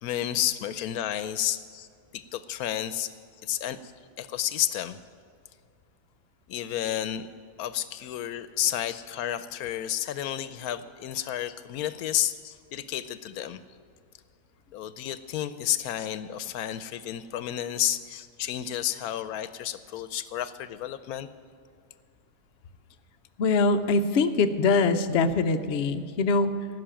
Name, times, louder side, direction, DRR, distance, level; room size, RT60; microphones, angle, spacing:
voice 1, 0.0-1.6 2.1-3.1 3.4-3.8 4.2-5.0 6.5-7.3 7.6-12.4 12.7-13.6 14.7-21.3, left 11 dB, 85° left, 13 dB, 1.1 m, -31 dB
voice 2, 23.4-26.7, left 4 dB, 55° left, 7 dB, 0.8 m, -23 dB
16.0 x 6.4 x 8.9 m, 2.3 s
omnidirectional pair, 1.5 m